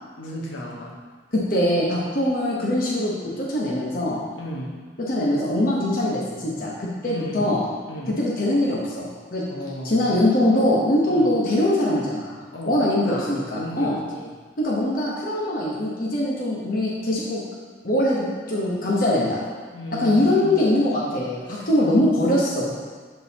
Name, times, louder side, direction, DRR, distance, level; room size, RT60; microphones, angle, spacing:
voice 1, 0.2-1.0 4.3-4.8 7.0-7.5 7.9-8.2 9.5-10.2 11.0-11.3 12.5-14.3 19.7-20.6 21.5-21.9, equal, 90° left, -3 dB, 1.3 m, -35 dB
voice 2, 1.3-4.2 5.1-7.6 8.2-9.4 9.8-12.4 12.6-14.0 14.6-17.4 17.8-19.4 20.0-22.8, left 1 dB, 50° left, -5 dB, 0.9 m, -22 dB
11.0 x 3.9 x 2.8 m, 1.5 s
head